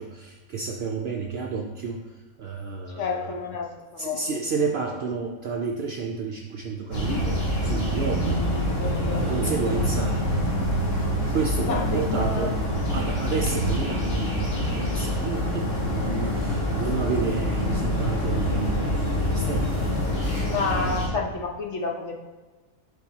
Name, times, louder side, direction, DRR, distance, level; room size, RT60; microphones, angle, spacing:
voice 1, 0.0-3.3 4.0-8.4 8.7-8.9 9.1-10.2 11.3-12.6 12.9-19.8, right 5 dB, 65° right, 1 dB, 0.6 m, -31 dB
voice 2, 3.0-4.4 8.8-9.3 9.7-9.9 11.6-12.5 20.3-22.1, left 4 dB, 60° left, 1 dB, 1.0 m, -30 dB
sound 1, 6.9-21.1, equal, 45° left, 1.8 m, -26 dB
9.9 x 3.9 x 2.8 m, 1.3 s
omnidirectional pair, 1.5 m